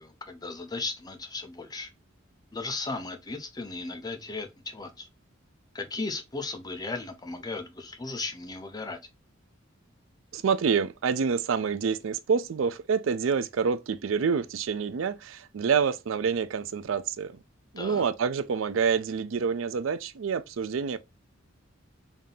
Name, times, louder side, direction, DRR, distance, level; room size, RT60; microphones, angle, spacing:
voice 1, 0.0-1.9 2.5-5.1 5.7-9.0 17.8-18.0, left 3 dB, 20° left, 0.6 m, -36 dB
voice 2, 10.3-17.4 17.7-21.0, right 6 dB, 80° right, 0.4 m, -27 dB
3.6 x 2.7 x 3.7 m
head